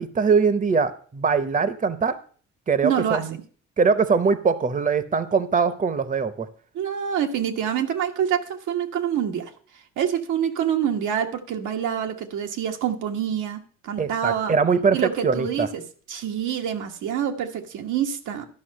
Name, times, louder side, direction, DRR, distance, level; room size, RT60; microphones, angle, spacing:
voice 1, 0.0-2.2 2.7-3.4 3.8-6.5 14.0-15.0 15.2-15.7, right 5 dB, 25° right, 14 dB, 0.8 m, -22 dB
voice 2, 2.8-3.2 6.7-9.5 10.0-14.5 14.9-15.8 16.1-18.5, right 9 dB, 85° right, 4 dB, 1.3 m, -26 dB
12.0 x 5.4 x 6.4 m, 0.43 s
cardioid pair, 90°, 30 cm